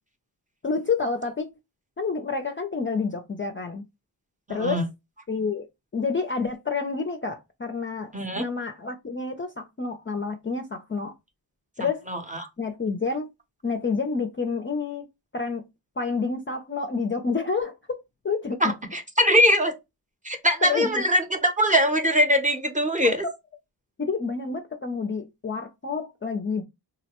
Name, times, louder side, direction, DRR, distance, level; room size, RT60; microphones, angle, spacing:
voice 1, 0.6-1.5 2.0-3.8 4.5-4.9 5.3-5.6 5.9-8.1 8.4-11.1 11.8-12.0 12.6-13.3 13.6-15.0 15.3-15.7 16.0-18.0 18.2-18.7 20.6-21.0 24.0-26.6, left 4 dB, 30° left, 0.4 m, -28 dB
voice 2, 4.5-4.8 8.1-8.4 12.1-12.5 18.6-19.7 20.2-23.2, equal, 15° right, 0.6 m, -22 dB
3.8 x 2.1 x 2.8 m
wide cardioid pair, 90°, 44 cm